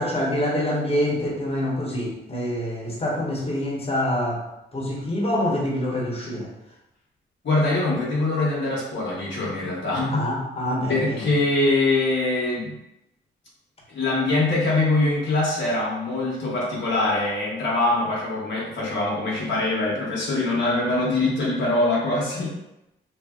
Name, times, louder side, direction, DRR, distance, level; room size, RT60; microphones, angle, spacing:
voice 1, 0.0-4.4 4.7-6.5 10.1-11.3, left 1 dB, 25° left, -4 dB, 1.0 m, -26 dB
voice 2, 7.4-10.3 10.9-12.8 13.9-22.5, left 2 dB, 60° left, -6 dB, 1.0 m, -23 dB
2.7 x 2.6 x 2.3 m, 0.89 s
supercardioid pair, 50°, 21 cm